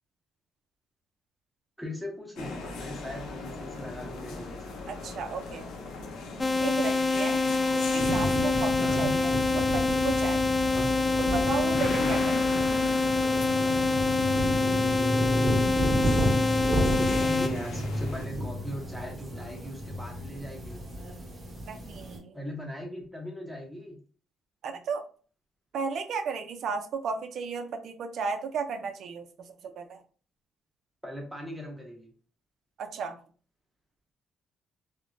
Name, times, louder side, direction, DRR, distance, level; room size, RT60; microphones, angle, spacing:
voice 1, 1.8-4.8 8.8-9.1 10.7-10.9 17.2-20.8 22.3-24.0 31.0-32.1, equal, ahead, 0 dB, 1.0 m, -39 dB
sound 1, 2.4-18.3, left 3 dB, 85° left, 0.5 m, -39 dB
voice 2, 4.9-5.7 6.4-7.4 7.7-10.4 11.2-12.4 21.7-22.4 24.6-25.0 25.7-29.3 29.8-30.0 32.8-33.2, right 5 dB, 70° right, 7 dB, 0.4 m, -34 dB
sound 2, 6.4-17.5, left 3 dB, 20° left, 0.3 m, -26 dB
sound 3, 8.0-22.2, equal, 40° right, 1.1 m, -32 dB
3.0 x 2.1 x 2.6 m, 0.41 s
cardioid pair, 90°, 0 cm